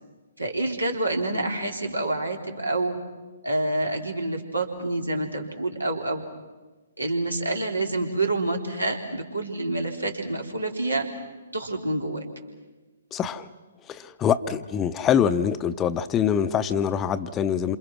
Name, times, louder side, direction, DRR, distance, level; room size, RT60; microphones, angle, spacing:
voice 1, 0.4-3.0 3.4-6.2 7.0-11.1 11.5-12.2, right 2 dB, 85° right, 2 dB, 3.8 m, -27 dB
voice 2, 13.1-13.5 13.9-17.8, left 8 dB, 20° left, 11 dB, 0.8 m, -24 dB
28.0 x 27.0 x 6.1 m, 1.2 s
figure-of-eight pair, 130°, 0 cm